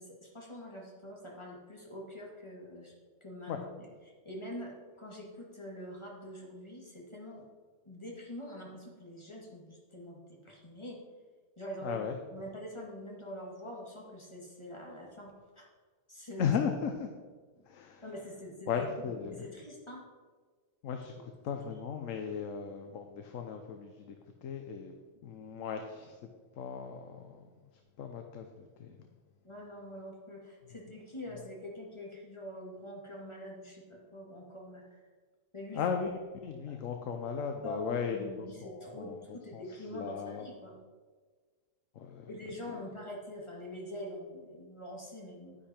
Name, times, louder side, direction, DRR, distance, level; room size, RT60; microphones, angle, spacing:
voice 1, 0.0-2.9 3.2-3.9 4.2-7.5 7.8-11.0 11.6-12.0 12.3-15.7 16.1-16.6 18.0-20.0 29.4-35.0 35.5-35.8 36.7-36.8 37.6-40.8 42.3-45.6, equal, 20° left, -2 dB, 2.2 m, -45 dB
voice 2, 11.8-12.2 16.4-17.1 17.7-18.0 18.7-19.4 20.8-24.1 24.4-24.9 25.2-26.3 26.6-27.5 28.0-28.9 35.7-39.6 39.9-40.5 42.0-42.3 42.7-42.8, left 6 dB, 80° left, 5 dB, 1.2 m, -36 dB
10.5 x 10.0 x 4.4 m, 1.5 s
omnidirectional pair, 1.3 m